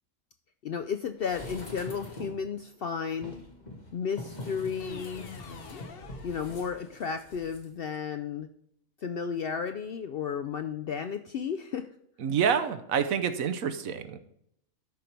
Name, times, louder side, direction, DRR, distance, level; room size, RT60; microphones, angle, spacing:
voice 1, 0.6-3.4 3.9-5.3 6.2-8.5 9.0-11.9, left 6 dB, 65° left, 7 dB, 0.6 m, -33 dB
sound 1, 1.2-2.5 3.1-7.6 7.9-8.0, left 1 dB, 30° left, 1.6 m, -44 dB
sound 2, 4.8-7.1, left 6 dB, 50° left, 0.9 m, -46 dB
voice 2, 12.2-14.2, right 7 dB, 80° right, 9 dB, 1.2 m, -27 dB
12.5 x 5.3 x 4.5 m, 0.70 s
omnidirectional pair, 1.4 m